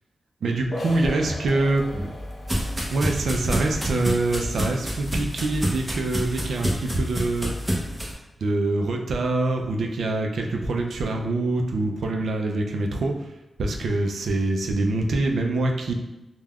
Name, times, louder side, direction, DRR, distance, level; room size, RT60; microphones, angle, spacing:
voice 1, 0.4-1.9 2.9-7.5 8.4-13.1 13.6-15.9, right 2 dB, 85° right, 2 dB, 0.3 m, -25 dB
sound 1, 0.7-6.2, left 1 dB, 50° left, 0.4 m, -40 dB
sound 2, 1.6-8.1, equal, 10° right, 0.6 m, -29 dB
3.3 x 2.1 x 2.3 m, 1.0 s
wide cardioid pair, 130°, 0 cm